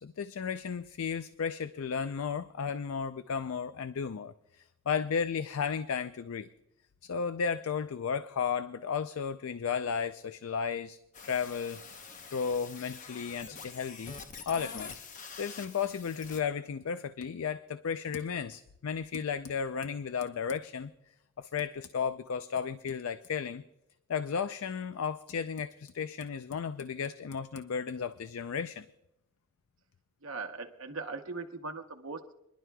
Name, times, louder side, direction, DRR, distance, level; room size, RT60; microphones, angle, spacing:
voice 1, 0.0-4.3 4.9-6.5 7.0-11.8 12.3-14.2 14.5-15.0 15.3-20.9 21.4-23.6 24.1-28.9, left 6 dB, 80° left, 12 dB, 0.4 m, -34 dB
sound 1, 11.1-16.4, left 5 dB, 40° left, 0.8 m, -46 dB
voice 2, 30.2-32.3, right 3 dB, 65° right, 4 dB, 0.9 m, -40 dB
26.5 x 11.5 x 2.3 m, 0.83 s
head